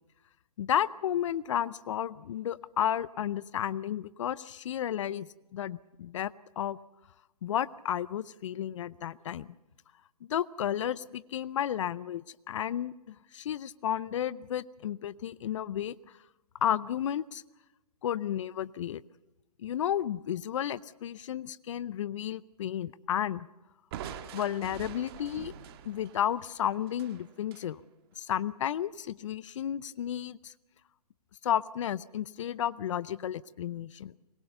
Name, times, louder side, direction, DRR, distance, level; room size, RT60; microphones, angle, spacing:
voice 1, 0.6-6.8 7.4-9.5 10.3-16.0 16.6-17.4 18.0-19.0 19.6-23.5 24.3-25.5 25.8-27.8 28.2-30.5 31.4-34.2, left 10 dB, 50° left, 19 dB, 0.7 m, -32 dB
Crushing, 23.9-27.7, right 9 dB, 40° right, 1.8 m, -45 dB
23.5 x 21.0 x 6.8 m, 1.0 s
hypercardioid pair, 140°, 20 cm